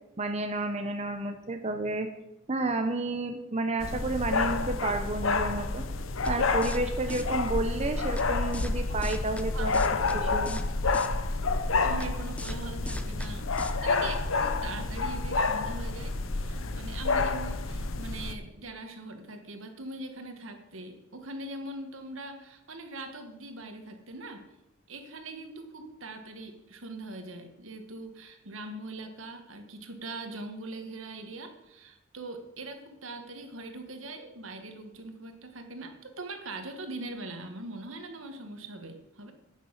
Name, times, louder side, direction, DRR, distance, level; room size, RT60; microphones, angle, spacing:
voice 1, 0.2-2.1 2.5-5.8 6.2-9.8 10.1-10.6, right 2 dB, 35° right, 6 dB, 0.8 m, -31 dB
sound 1, 3.8-18.3, left 3 dB, 75° left, 0.9 m, -29 dB
sound 2, 6.2-6.3 6.6-6.8 7.1-7.2 8.2-8.3 8.5-8.7 9.0-9.4 9.7-10.2 10.5-10.6 10.9-11.1 12.0-12.1 12.4-12.6 12.9-13.3 13.6-13.7, left 1 dB, 5° left, 0.7 m, -40 dB
voice 2, 11.8-24.4 24.9-39.3, right 2 dB, 75° right, 6 dB, 1.6 m, -41 dB
10.5 x 6.8 x 8.0 m, 0.91 s
head